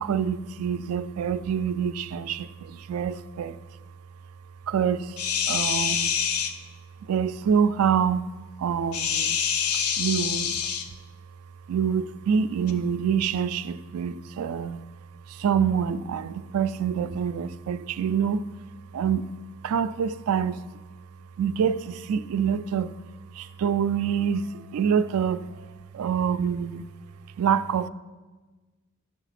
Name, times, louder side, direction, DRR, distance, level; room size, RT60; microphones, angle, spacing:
voice 1, 0.0-2.2 2.9-3.5 4.7-5.0 5.5-6.1 7.1-8.2 8.6-9.0 10.0-10.5 11.7-13.6 13.9-14.8 15.4-16.2 16.5-18.4 19.0-19.2 19.7-20.5 21.4-21.7 22.1-22.9 23.6-24.4 24.7-25.4 26.0-26.8 27.4-27.9, right 7 dB, 75° right, 13 dB, 0.3 m, -25 dB
sound 1, 5.2-6.5 8.9-10.9 12.7-12.8, left 7 dB, 75° left, 0.6 m, -26 dB
11.5 x 4.0 x 5.8 m, 1.3 s
head